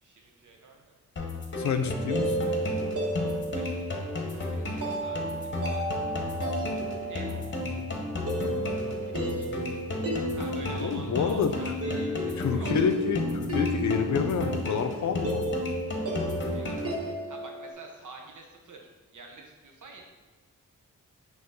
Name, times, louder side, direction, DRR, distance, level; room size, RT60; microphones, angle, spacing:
voice 1, 0.0-1.0 1.8-1.9 3.1-5.9 7.1-7.3 8.8-9.6 10.4-12.7 16.5-20.0, right 3 dB, 70° right, 1 dB, 1.1 m, -48 dB
sound 1, 1.2-17.2, left 2 dB, 35° left, 0.9 m, -33 dB
voice 2, 1.6-2.5 10.8-11.5 12.4-15.5, left 6 dB, 65° left, 7 dB, 0.5 m, -28 dB
sound 2, 1.8-17.7, right 1 dB, 45° right, 1.2 m, -34 dB
sound 3, 6.0-13.6, right 2 dB, 30° right, 1.7 m, -49 dB
5.8 x 3.0 x 5.5 m, 1.2 s
wide cardioid pair, 160°, 32 cm